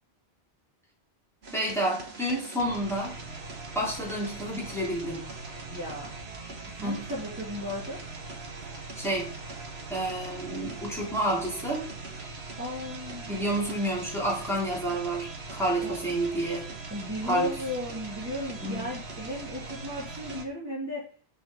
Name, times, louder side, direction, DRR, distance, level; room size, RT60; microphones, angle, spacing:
sound 1, 1.4-20.5, right 3 dB, 80° right, 1.6 m, -41 dB
voice 1, 1.5-3.2 3.7-5.3 6.8-7.0 9.0-9.3 9.9-11.9 13.3-16.7 17.2-17.5 18.6-18.9, right 1 dB, ahead, -5 dB, 3.5 m, -29 dB
voice 2, 5.7-6.2 6.7-8.0 12.6-13.4 15.7-16.0 16.9-21.1, left 1 dB, 15° right, -7 dB, 2.7 m, -35 dB
6.9 x 6.1 x 5.2 m, 0.40 s
omnidirectional pair, 1.1 m